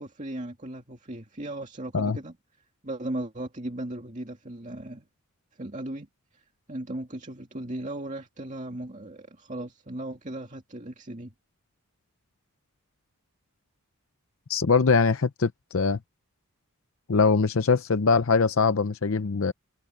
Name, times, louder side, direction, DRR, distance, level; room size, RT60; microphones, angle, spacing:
voice 1, 0.0-2.4 2.8-5.1 5.6-6.1 6.3-11.3, right 1 dB, 35° right, 2.2 m, -37 dB
voice 2, 14.5-16.0 17.1-19.5, left 4 dB, 65° left, 0.6 m, -22 dB
head